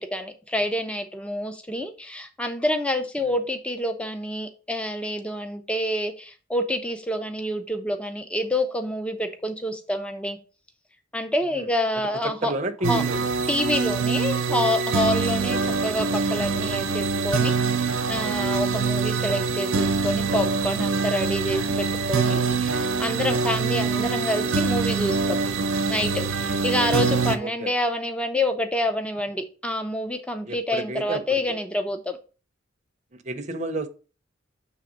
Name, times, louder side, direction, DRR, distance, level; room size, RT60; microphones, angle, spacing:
voice 1, 0.0-10.4 11.1-12.5 12.9-13.0 13.5-25.4 25.9-32.2, left 1 dB, 5° left, 0.5 m, -27 dB
voice 2, 12.2-13.3 15.2-15.6 27.4-27.7 30.5-31.2 33.2-33.9, right 1 dB, 35° right, 0.6 m, -31 dB
sound 1, 12.8-27.4, right 4 dB, 80° right, 0.7 m, -24 dB
7.1 x 3.3 x 5.0 m
head